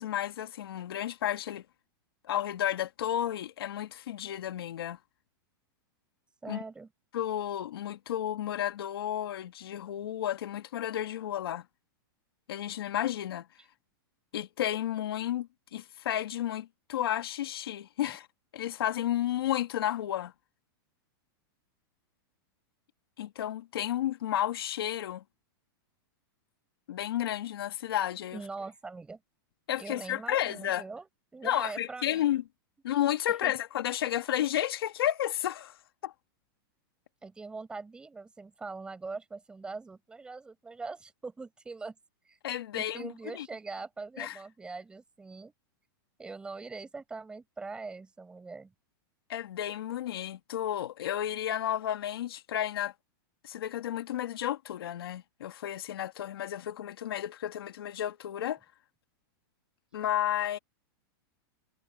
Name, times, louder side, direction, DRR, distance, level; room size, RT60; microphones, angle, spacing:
voice 1, 0.0-1.6 2.2-5.0 6.5-6.6 7.1-11.6 12.5-13.5 14.3-18.3 18.5-20.3 23.2-25.2 26.9-28.4 29.7-30.8 31.4-32.4 32.8-35.7 36.0-36.1 42.4-43.5 44.2-44.4 49.3-52.9 53.4-58.6 59.9-60.6, left 12 dB, 85° left, 2.0 m, -32 dB
voice 2, 6.4-6.9 18.0-18.1 28.3-29.2 29.8-32.4 33.3-33.5 37.2-41.9 42.2-42.4 42.7-45.5 46.2-48.7, right 4 dB, 5° right, 6.3 m, -42 dB
supercardioid pair, 165°, 12 cm